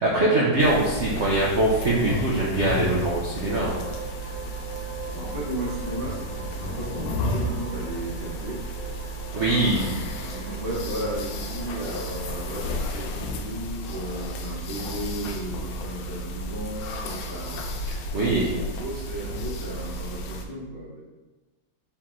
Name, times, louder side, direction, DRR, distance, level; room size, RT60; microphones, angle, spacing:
voice 1, 0.0-3.8 9.3-10.0 18.1-18.5, right 2 dB, 65° right, -4 dB, 0.7 m, -22 dB
sound 1, 0.6-20.4, equal, 90° left, 1.3 m, -33 dB
sound 2, 3.5-12.8, right 6 dB, 90° right, 1.3 m, -42 dB
voice 2, 4.9-8.6 9.1-21.0, equal, 20° left, -8 dB, 0.6 m, -35 dB
4.6 x 3.0 x 3.7 m, 1.2 s
omnidirectional pair, 2.0 m